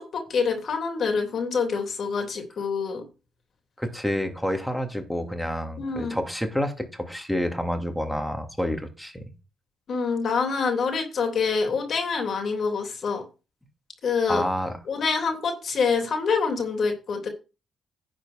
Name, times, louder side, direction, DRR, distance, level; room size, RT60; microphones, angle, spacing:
voice 1, 0.0-3.0 5.8-6.2 9.9-13.2 14.0-14.4 14.9-17.3, left 5 dB, 55° left, 4 dB, 3.1 m, -26 dB
voice 2, 3.8-9.2 14.3-14.7, equal, 5° left, 4 dB, 2.6 m, -28 dB
10.5 x 5.0 x 6.6 m, 0.30 s
cardioid pair, 90°, 0 cm